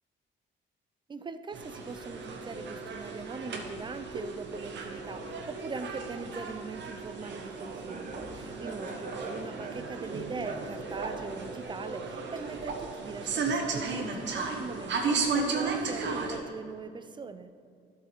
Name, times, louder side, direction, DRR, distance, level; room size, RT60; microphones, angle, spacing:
voice 1, 1.1-17.5, right 4 dB, 25° right, 11 dB, 0.5 m, -41 dB
sound 1, 1.5-16.4, right 4 dB, 65° right, 1.1 m, -35 dB
Laughter, 7.0-12.9, right 3 dB, 45° right, 1.1 m, -43 dB
11.5 x 4.8 x 4.6 m, 2.3 s
cardioid pair, 90°, 20 cm